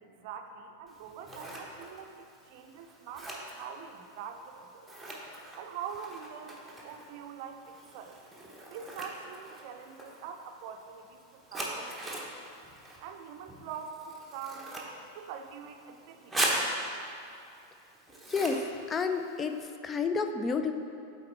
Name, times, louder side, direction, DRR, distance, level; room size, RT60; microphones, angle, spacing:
voice 1, 0.0-4.9 5.6-8.2 8.7-12.2 13.0-14.0 14.3-14.7 15.1-16.3, right 7 dB, 45° right, 5 dB, 0.5 m, -44 dB
Scissors, 0.9-19.7, right 1 dB, 5° right, 1.0 m, -40 dB
voice 2, 18.3-19.6 19.8-20.7, left 5 dB, 20° left, 7 dB, 0.4 m, -30 dB
7.7 x 4.2 x 4.4 m, 2.5 s
figure-of-eight pair, 90°, 0 cm